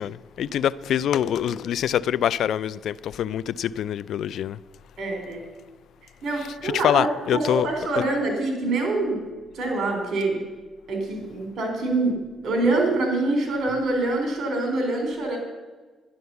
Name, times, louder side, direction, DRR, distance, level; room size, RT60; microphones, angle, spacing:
voice 1, 0.0-4.6 6.6-7.7, left 10 dB, 70° left, 0.4 m, -25 dB
voice 2, 5.0-5.4 6.2-9.2 9.5-10.4 10.9-12.2 12.4-15.4, right 2 dB, 60° right, 3.7 m, -25 dB
11.0 x 10.5 x 6.9 m
cardioid pair, 90°, 0 cm